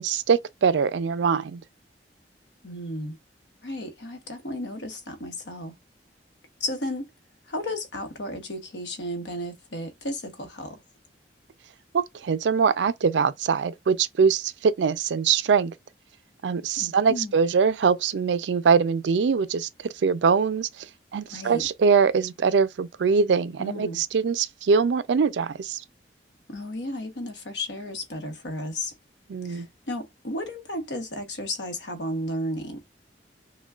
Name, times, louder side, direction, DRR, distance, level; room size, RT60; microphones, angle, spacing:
voice 1, 0.0-1.6 11.9-15.7 16.4-20.9 21.1-25.8 29.3-29.7, right 5 dB, 85° right, 0.4 m, -23 dB
voice 2, 2.6-3.2 3.6-5.7 6.6-7.1 7.5-10.8 16.8-17.4 21.3-21.7 23.6-24.0 26.5-28.9 29.4-32.8, left 1 dB, 90° left, 1.1 m, -33 dB
6.0 x 2.2 x 2.4 m
head